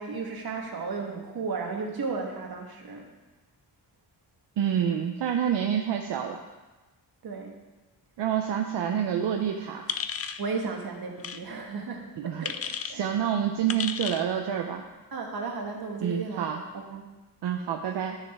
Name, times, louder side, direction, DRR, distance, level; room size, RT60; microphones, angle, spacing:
voice 1, 0.0-3.1 7.2-7.6 10.4-13.0 15.1-17.1, right 4 dB, 60° right, 2 dB, 1.5 m, -34 dB
voice 2, 4.6-6.4 8.2-9.8 12.2-12.5 12.9-14.8 16.0-16.6 17.4-18.2, right 9 dB, 80° right, 3 dB, 0.6 m, -28 dB
sound 1, 9.9-10.4 11.2-11.4 12.4-12.9 13.7-14.3, left 7 dB, 35° left, 0.4 m, -33 dB
10.5 x 6.5 x 3.5 m, 1.2 s
cardioid pair, 100°, 41 cm